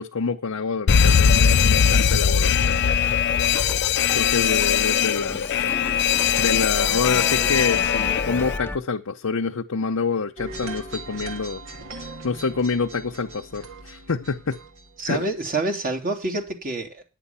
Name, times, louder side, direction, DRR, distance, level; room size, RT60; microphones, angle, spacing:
voice 1, 0.0-2.9 4.1-5.6 6.4-11.6 12.2-14.6 15.0-15.2, left 4 dB, 85° left, 0.8 m, -27 dB
Alarm, 0.9-8.6, left 8 dB, 55° left, 0.5 m, -20 dB
sound 1, 2.6-8.8, left 2 dB, 10° left, 0.6 m, -34 dB
sound 2, 10.4-15.5, right 2 dB, 65° right, 2.2 m, -39 dB
voice 2, 15.0-17.0, right 2 dB, 40° right, 2.8 m, -27 dB
10.5 x 9.3 x 5.7 m
head